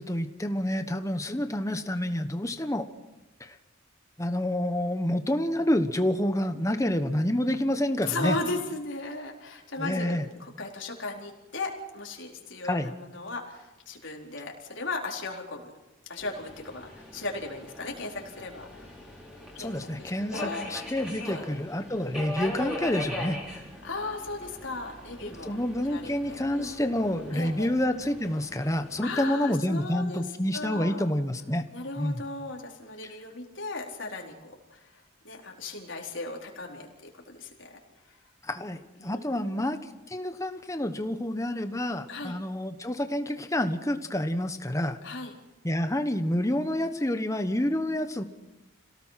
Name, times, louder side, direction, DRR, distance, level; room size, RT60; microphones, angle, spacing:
voice 1, 0.0-2.9 3.4-3.6 4.2-8.4 9.8-10.2 12.6-12.9 19.6-23.4 25.2-31.7 32.0-32.2 38.4-39.8 40.1-45.0 45.6-48.2, left 1 dB, 15° left, 8 dB, 1.2 m, -28 dB
voice 2, 8.0-15.7 16.1-19.1 19.6-19.7 20.0-20.6 21.2-21.4 23.8-26.7 27.3-27.7 29.0-30.2 30.5-31.0 31.7-37.7 38.0-38.1 39.0-39.6 42.1-42.4 45.0-45.3, left 3 dB, 70° left, 0 dB, 4.2 m, -37 dB
Subway metro underground, 16.2-29.0, left 1 dB, 5° right, 4.9 m, -41 dB
27.5 x 17.5 x 5.9 m, 0.99 s
head